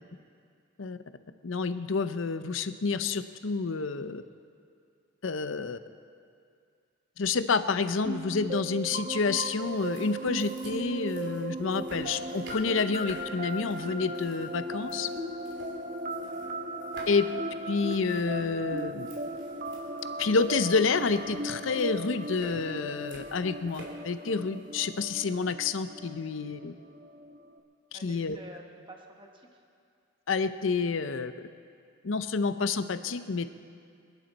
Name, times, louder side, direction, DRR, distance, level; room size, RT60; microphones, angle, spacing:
voice 1, 1.4-4.2 5.2-5.8 7.2-15.1 17.1-17.3 17.7-19.1 20.2-26.7 27.9-28.4 30.3-31.3 32.0-33.5, left 4 dB, 80° left, 11 dB, 0.6 m, -29 dB
sound 1, 8.0-27.6, right 1 dB, 40° right, 0.9 m, -37 dB
sound 2, 9.2-25.0, right 1 dB, 65° right, 2.7 m, -52 dB
voice 2, 16.2-16.5 27.9-29.6, right 1 dB, 25° right, 1 dB, 1.3 m, -50 dB
25.0 x 10.5 x 4.1 m, 2.3 s
head